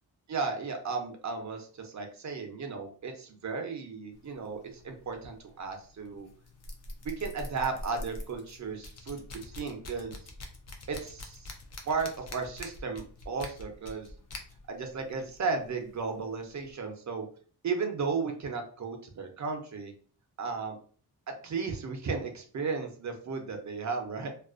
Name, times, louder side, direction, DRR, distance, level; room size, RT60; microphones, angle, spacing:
voice 1, 0.3-6.3 7.0-10.2 10.9-11.5 11.8-14.1 14.7-17.3 17.6-19.9 20.4-20.8 21.3-24.3, right 4 dB, 45° right, 4 dB, 0.5 m, -35 dB
sound 1, 4.1-16.7, left 1 dB, 40° left, 0.4 m, -46 dB
2.4 x 2.1 x 2.4 m, 0.43 s
wide cardioid pair, 125°, 41 cm